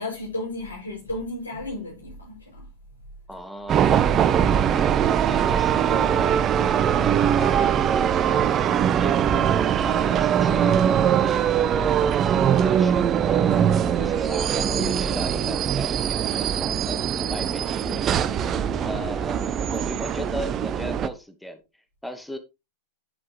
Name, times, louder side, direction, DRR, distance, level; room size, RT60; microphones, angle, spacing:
voice 1, 0.0-2.6 19.4-19.5, left 2 dB, 75° left, 6.5 m, -33 dB
voice 2, 3.3-9.2 9.8-18.1 18.8-21.6 22.0-22.4, equal, 5° left, 1.2 m, -36 dB
sound 1, 3.7-21.1, right 9 dB, 30° right, 0.8 m, -22 dB
9.9 x 7.5 x 3.1 m
figure-of-eight pair, 90°, 0 cm